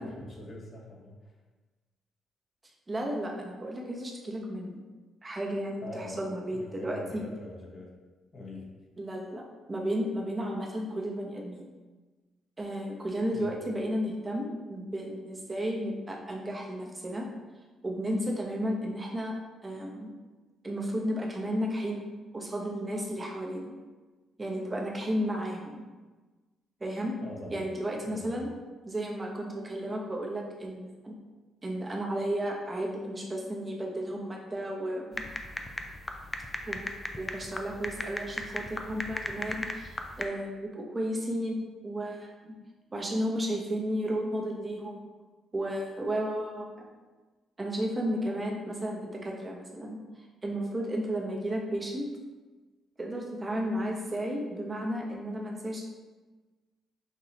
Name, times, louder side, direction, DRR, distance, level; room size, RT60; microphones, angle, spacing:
voice 1, 0.0-1.3 5.8-7.9 8.3-8.7 13.3-13.6 27.2-27.7 28.0-28.5, left 2 dB, 45° left, -1 dB, 1.0 m, -43 dB
voice 2, 2.9-4.8 5.2-7.3 9.0-9.4 9.7-11.7 12.6-17.3 17.8-19.3 19.6-20.1 20.6-22.0 22.3-23.7 24.4-25.8 26.8-27.2 27.5-28.5 28.8-31.1 31.6-35.2 36.7-36.8 37.1-42.5 42.9-45.0 45.5-46.7 47.6-50.0 50.4-52.1 53.0-55.8, equal, 25° right, -1 dB, 0.9 m, -33 dB
sound 1, 35.1-40.3, left 2 dB, 20° left, 0.4 m, -37 dB
5.9 x 2.7 x 2.8 m, 1.3 s
cardioid pair, 90°, 0 cm